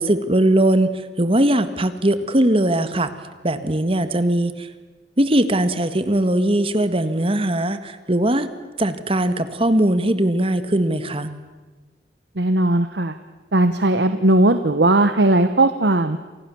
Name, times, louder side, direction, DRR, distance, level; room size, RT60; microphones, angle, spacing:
voice 1, 0.0-3.1 3.4-4.7 5.2-8.5 8.8-11.3, right 1 dB, 30° right, 11 dB, 1.7 m, -20 dB
voice 2, 12.4-13.1 13.5-16.2, right 2 dB, 75° right, 9 dB, 1.2 m, -17 dB
30.0 x 27.0 x 7.1 m, 1.2 s
head